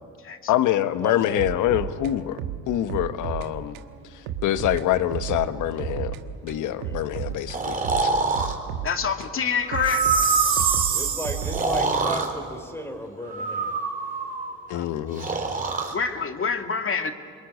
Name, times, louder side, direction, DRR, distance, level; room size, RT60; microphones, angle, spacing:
voice 1, 0.5-2.4 2.7-3.8 4.4-6.1 6.4-7.8 8.0-8.1 14.7-15.3, left 12 dB, 75° left, 12 dB, 1.3 m, -25 dB
voice 2, 1.0-1.5 6.8-7.0 10.9-13.7, equal, 10° left, 2 dB, 3.5 m, -35 dB
sound 1, 1.4-3.5 3.7-3.9 4.3-6.2 6.5-9.4 9.7-12.3, right 9 dB, 90° right, 1.4 m, -33 dB
Breathing, 7.5-8.6 9.6-10.9 11.4-12.3 13.3-14.5 15.2-16.0, right 3 dB, 25° right, 3.8 m, -25 dB
voice 3, 8.8-10.1 14.7-14.9 15.2-17.1, left 6 dB, 45° left, 6 dB, 2.3 m, -27 dB
Chime, 9.8-11.8, right 7 dB, 50° right, 4.2 m, -26 dB
26.0 x 22.5 x 9.6 m, 2.1 s
supercardioid pair, 75°, 31 cm